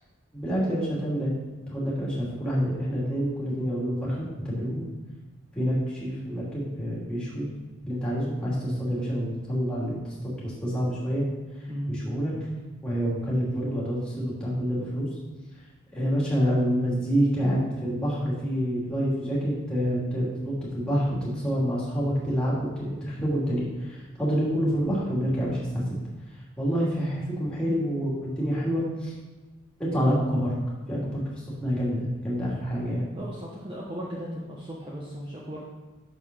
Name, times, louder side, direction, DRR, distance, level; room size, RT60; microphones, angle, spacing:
voice 1, 0.3-1.3 1.7-4.9 5.5-7.5 7.8-11.3 11.6-12.3 12.8-15.1 15.9-25.8 26.3-29.1 29.8-30.6 30.9-33.1, equal, 5° left, -7 dB, 2.5 m, -27 dB
voice 2, 33.1-35.6, equal, 25° right, -4 dB, 0.9 m, -36 dB
6.5 x 5.6 x 6.0 m, 1.2 s
head